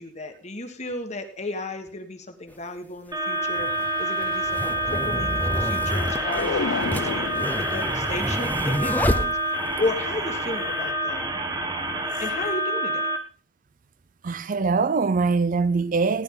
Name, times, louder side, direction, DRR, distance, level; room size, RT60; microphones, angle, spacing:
voice 1, 0.0-7.3 7.6-11.2 12.2-13.1, left 2 dB, 35° left, 1.6 m, -34 dB
sound 1, 2.5-2.6 3.5-9.9, left 1 dB, 10° left, 0.8 m, -29 dB
sound 2, 3.1-13.2, right 1 dB, 20° right, 1.3 m, -27 dB
sound 3, 3.9-4.9 5.4-8.6 9.1-9.4, left 5 dB, 70° left, 0.5 m, -33 dB
voice 2, 14.2-16.2, right 4 dB, 45° right, 0.4 m, -23 dB
16.0 x 10.0 x 3.8 m
head